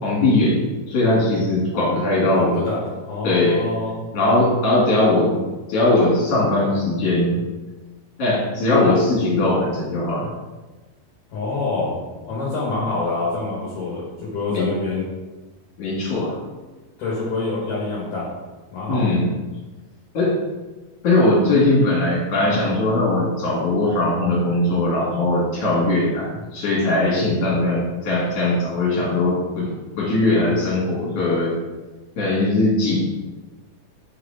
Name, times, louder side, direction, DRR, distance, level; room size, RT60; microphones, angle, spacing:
voice 1, 0.0-2.6 3.2-3.6 4.1-5.4 5.7-7.4 8.2-10.3 14.5-14.7 15.8-16.4 18.9-19.3 20.1-20.4 21.0-29.7 30.0-31.6 32.2-33.0, left 2 dB, 45° left, -5 dB, 3.4 m, -20 dB
voice 2, 2.3-4.0 11.3-15.1 17.0-18.3 18.7-19.1, left 3 dB, 65° left, -7 dB, 2.9 m, -26 dB
6.5 x 4.8 x 5.1 m, 1.2 s
omnidirectional pair, 4.4 m